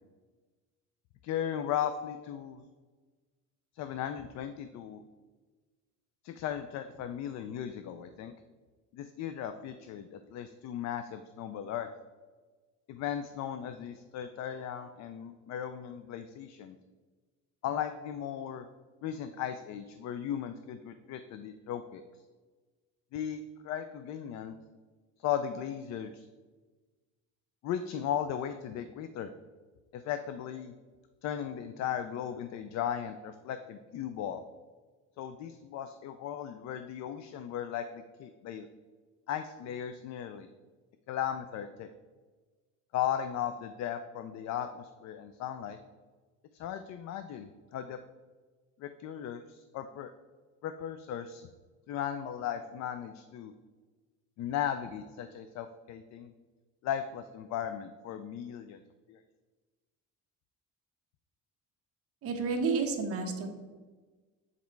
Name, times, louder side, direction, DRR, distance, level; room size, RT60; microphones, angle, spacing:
voice 1, 1.2-2.6 3.7-5.0 6.2-8.3 8.9-11.9 12.9-16.8 17.6-18.7 19.0-22.0 23.1-24.6 25.2-26.3 27.6-29.3 29.9-30.7 31.2-34.4 35.2-38.7 39.3-40.5 41.1-41.9 42.9-45.8 46.5-48.0 48.8-50.1 50.6-51.5 51.9-53.5 54.4-56.3 56.8-58.8 59.1-59.2, left 9 dB, 60° left, 10 dB, 0.4 m, -36 dB
voice 2, 62.2-63.5, right 4 dB, 45° right, 3 dB, 1.1 m, -30 dB
7.4 x 4.2 x 4.5 m, 1.3 s
cardioid pair, 160°, 31 cm